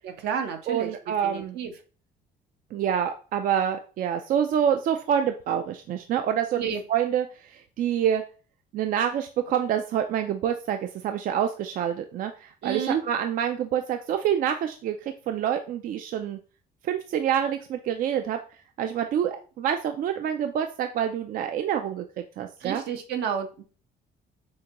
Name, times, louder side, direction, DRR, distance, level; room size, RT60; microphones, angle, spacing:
voice 1, 0.0-1.7 6.6-6.8 12.6-13.0 22.6-23.6, right 7 dB, 75° right, 6 dB, 0.8 m, -30 dB
voice 2, 0.7-1.6 2.7-8.2 8.7-15.0 15.3-16.4 16.8-18.4 18.8-22.8, right 9 dB, 55° right, 7 dB, 0.4 m, -27 dB
6.3 x 2.2 x 2.9 m, 0.38 s
cardioid pair, 110°, 17 cm